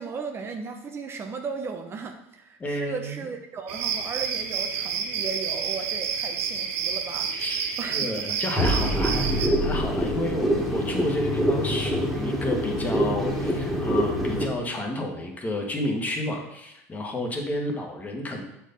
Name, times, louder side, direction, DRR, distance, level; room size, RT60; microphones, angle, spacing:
voice 1, 0.0-7.5 7.8-8.2, right 5 dB, 35° right, 4 dB, 0.9 m, -36 dB
voice 2, 2.6-3.3 7.3-18.4, left 1 dB, 20° left, 2 dB, 1.7 m, -31 dB
sound 1, 3.7-9.5, right 7 dB, 85° right, 0.9 m, -29 dB
sound 2, 8.6-14.5, equal, ahead, 2.0 m, -25 dB
7.1 x 4.7 x 5.4 m, 0.83 s
supercardioid pair, 95°, 7 cm